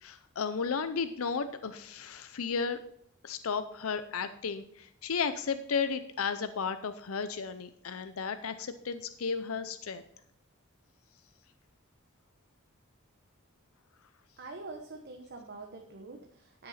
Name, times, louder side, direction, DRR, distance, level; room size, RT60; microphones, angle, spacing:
voice 1, 0.0-2.8 3.2-10.0, left 5 dB, 90° left, 11 dB, 0.6 m, -34 dB
voice 2, 14.4-16.7, right 3 dB, 50° right, 3 dB, 1.1 m, -45 dB
12.0 x 6.7 x 4.2 m, 0.70 s
head